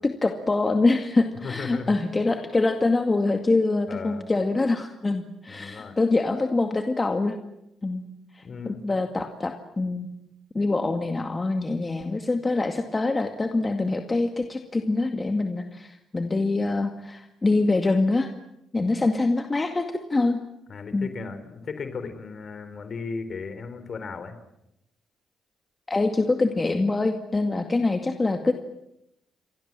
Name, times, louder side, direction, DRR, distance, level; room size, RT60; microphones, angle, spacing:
voice 1, 0.0-7.4 7.8-8.0 8.3-10.1 10.5-18.3 18.7-20.4 20.9-21.1 25.9-28.5, left 3 dB, 25° left, 5 dB, 2.2 m, -24 dB
voice 2, 1.4-1.9 3.9-4.3 5.5-6.0 8.4-8.8 20.7-24.4, left 5 dB, 50° left, 10 dB, 4.2 m, -36 dB
29.5 x 23.5 x 7.6 m, 0.84 s
cardioid pair, 90°, 0 cm